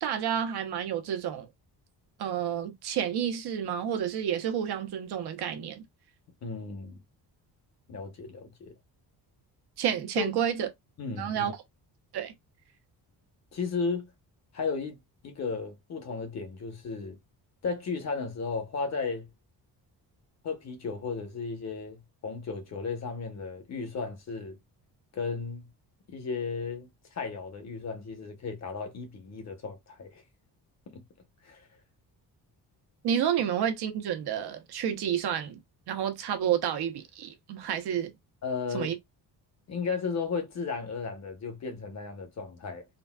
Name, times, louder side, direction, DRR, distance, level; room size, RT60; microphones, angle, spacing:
voice 1, 0.0-1.5 2.2-5.8 9.8-10.7 11.2-11.5 12.1-12.3 33.0-35.6 35.9-38.1 38.7-39.0, right 9 dB, 70° right, 0.8 m, -30 dB
voice 2, 6.4-7.0 7.9-8.7 10.2-10.3 11.0-11.5 13.5-14.1 14.5-15.0 15.2-17.2 17.6-19.3 20.4-24.6 25.1-25.7 26.1-26.9 27.1-30.2 30.9-31.0 31.4-31.7 38.4-38.9 39.7-42.8, left 4 dB, 40° left, 0.9 m, -34 dB
3.9 x 2.1 x 2.2 m
cardioid pair, 165°, 40 cm